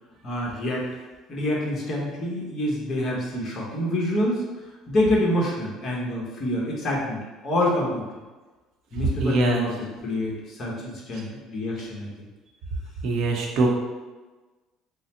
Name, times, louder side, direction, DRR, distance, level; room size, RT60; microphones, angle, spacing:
voice 1, 0.2-1.0 1.3-4.5 4.9-7.2 7.4-8.0 8.9-9.7 10.0-12.1, left 1 dB, 35° left, -3 dB, 1.0 m, -26 dB
voice 2, 9.2-9.7 11.1-11.2 13.0-13.7, right 3 dB, 60° right, 0 dB, 0.8 m, -23 dB
3.8 x 2.0 x 4.2 m, 1.2 s
cardioid pair, 130°, 0 cm